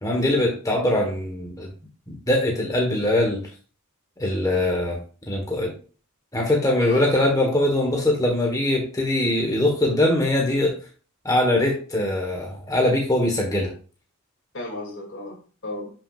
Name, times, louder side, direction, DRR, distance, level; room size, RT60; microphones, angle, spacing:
voice 1, 0.0-1.7 2.1-3.4 4.2-5.0 5.3-5.7 6.3-10.8 11.2-13.7, left 1 dB, 15° left, 0 dB, 1.5 m, -22 dB
voice 2, 6.8-7.3 14.5-15.9, left 2 dB, 60° left, 1 dB, 2.8 m, -35 dB
11.0 x 6.0 x 2.5 m, 0.39 s
head